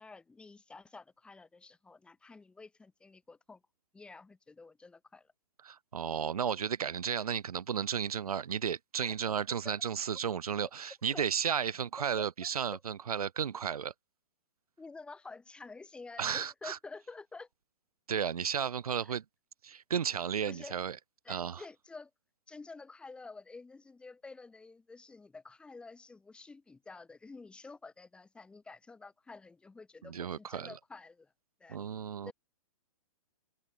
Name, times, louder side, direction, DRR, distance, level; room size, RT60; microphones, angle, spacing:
voice 1, 0.0-3.6 3.9-5.3 9.0-9.1 9.6-9.7 11.1-11.3 12.2-12.8 14.8-17.5 19.0-19.2 20.5-20.8 21.2-22.1 22.5-31.3 31.6-31.8 32.2-32.3, left 3 dB, 5° left, 5.4 m, -50 dB
voice 2, 5.6-13.9 16.2-16.8 18.1-19.2 19.6-21.0 21.3-21.6 30.1-30.7 31.7-32.3, right 7 dB, 85° right, 4.1 m, -33 dB
hypercardioid pair, 165°, 18 cm